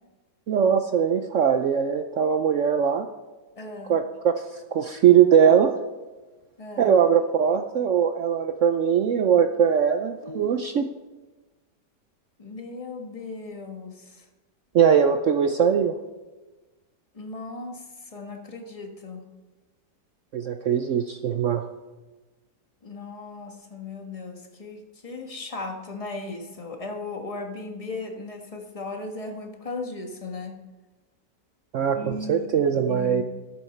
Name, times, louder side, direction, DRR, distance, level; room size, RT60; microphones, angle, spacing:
voice 1, 0.5-3.1 3.9-5.7 6.8-10.9 14.7-15.9 20.3-21.6 31.7-33.2, right 8 dB, 60° right, 7 dB, 0.8 m, -21 dB
voice 2, 3.6-4.0 6.6-6.9 10.2-10.5 12.4-14.2 17.1-19.2 22.8-30.6 31.9-32.5 32.9-33.2, left 3 dB, 20° left, 3 dB, 1.5 m, -37 dB
13.5 x 10.5 x 4.4 m, 1.2 s
omnidirectional pair, 1.7 m